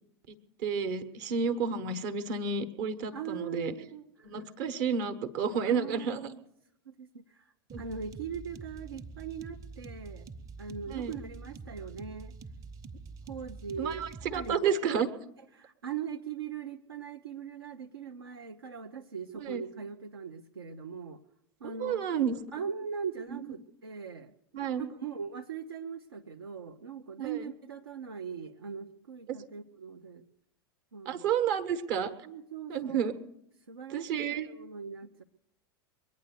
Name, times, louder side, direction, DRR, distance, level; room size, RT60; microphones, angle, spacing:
voice 1, 0.3-3.7 4.2-6.3 7.7-7.8 10.9-11.2 13.8-15.1 19.3-19.6 21.6-22.4 23.3-23.5 24.5-24.9 27.2-27.3 29.3-29.4 31.0-32.1 32.7-33.1 33.9-34.5, right 6 dB, 50° right, 12 dB, 1.3 m, -31 dB
voice 2, 3.1-4.5 5.6-6.4 6.9-10.3 10.6-12.3 13.3-14.7 15.5-21.2 21.6-22.1 22.5-24.3 24.8-30.2 30.9-31.3 32.2-33.0 33.7-35.2, right 6 dB, 75° right, 4 dB, 0.7 m, -40 dB
sound 1, 7.7-14.6, right 4 dB, 30° right, 1.2 m, -46 dB
22.5 x 9.5 x 6.7 m, 0.77 s
figure-of-eight pair, 85°, 13 cm